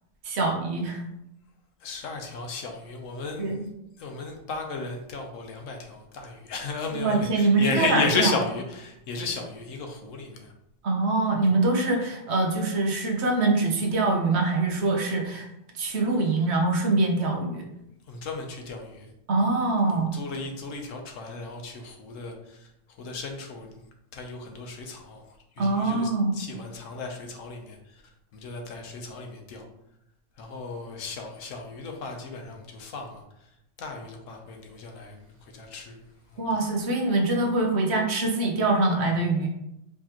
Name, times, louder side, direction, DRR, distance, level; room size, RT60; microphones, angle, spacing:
voice 1, 0.2-1.0 3.4-3.7 6.9-8.3 10.8-15.5 15.7-17.6 19.3-20.1 25.6-26.3 36.4-39.5, right 2 dB, 60° right, 2 dB, 1.0 m, -24 dB
voice 2, 1.8-3.6 4.0-10.5 18.1-19.1 19.9-23.8 24.1-28.0 28.3-29.7 30.4-33.2 33.8-36.0 36.3-36.5, left 3 dB, 80° left, 3 dB, 1.1 m, -34 dB
4.8 x 3.4 x 2.9 m, 0.83 s
omnidirectional pair, 1.3 m